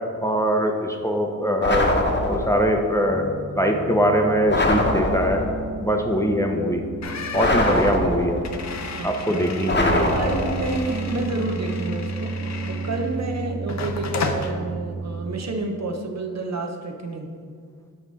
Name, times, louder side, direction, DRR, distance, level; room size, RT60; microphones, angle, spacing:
voice 1, 0.2-1.9 2.3-3.3 3.6-5.4 5.8-6.8 7.3-8.4 9.0-10.1, equal, 10° left, 2 dB, 0.7 m, -22 dB
sound 1, 1.6-2.7 4.5-5.6 7.3-8.5 9.7-10.8, left 1 dB, 35° left, 1.0 m, -22 dB
Piano, 3.1-15.6, right 3 dB, 25° right, 0.5 m, -33 dB
sound 2, 7.0-13.2 13.7-14.5, left 4 dB, 55° left, 0.7 m, -33 dB
voice 2, 8.9-9.4 9.8-12.4 12.7-17.3, right 2 dB, 55° right, 3 dB, 0.9 m, -30 dB
7.4 x 4.7 x 4.1 m, 2.1 s
cardioid pair, 55°, 33 cm